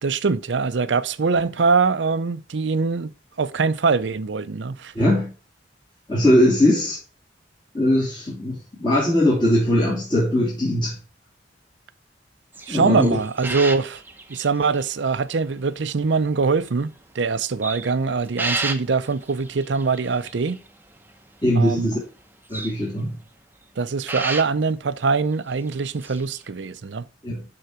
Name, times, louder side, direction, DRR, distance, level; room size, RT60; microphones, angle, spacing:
voice 1, 0.0-3.1 3.4-4.9 12.7-14.0 14.3-20.6 21.5-22.0 23.8-27.1, right 4 dB, 75° right, 0.6 m, -23 dB
voice 2, 4.9-5.3 6.1-7.0 7.7-10.9 12.7-13.2 21.4-22.0 22.5-23.1 27.2-27.4, left 1 dB, 25° left, 2.9 m, -20 dB
sound 1, 12.5-14.9 15.1-15.2 16.0-16.8 17.2-21.2 21.5-22.0 22.5-22.7 24.1-24.4 25.0-25.1 25.5-26.5, right 3 dB, 10° right, 0.9 m, -32 dB
11.5 x 3.9 x 4.4 m
head